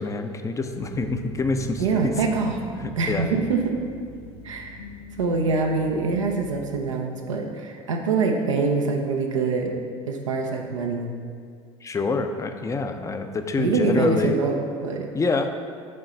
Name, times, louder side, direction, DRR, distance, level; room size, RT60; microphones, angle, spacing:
voice 1, 0.0-2.1 2.8-3.3 11.8-14.4 15.1-15.5, left 3 dB, 20° left, 7 dB, 0.6 m, -26 dB
sound 1, 0.7-6.7, equal, 70° left, 0.9 m, -40 dB
voice 2, 1.8-2.6 3.0-3.7 4.4-4.8 5.2-9.7 10.1-11.1 13.6-15.1, right 4 dB, 85° right, 1 dB, 0.6 m, -24 dB
6.6 x 3.9 x 5.7 m, 2.1 s
hypercardioid pair, 70°, 16 cm